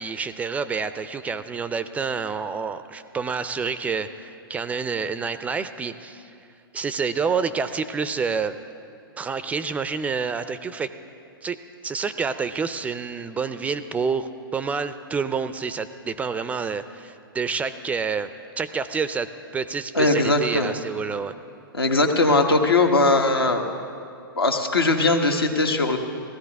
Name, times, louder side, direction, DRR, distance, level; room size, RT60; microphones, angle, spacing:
voice 1, 0.0-6.3 6.7-8.6 9.2-10.9 11.4-11.6 11.8-18.3 18.6-21.3, right 5 dB, 10° right, 12 dB, 0.3 m, -28 dB
voice 2, 19.9-20.7 21.7-23.6 24.4-26.0, left 2 dB, 90° left, 3 dB, 1.2 m, -20 dB
16.5 x 14.5 x 3.5 m, 2.5 s
figure-of-eight pair, 115°, 12 cm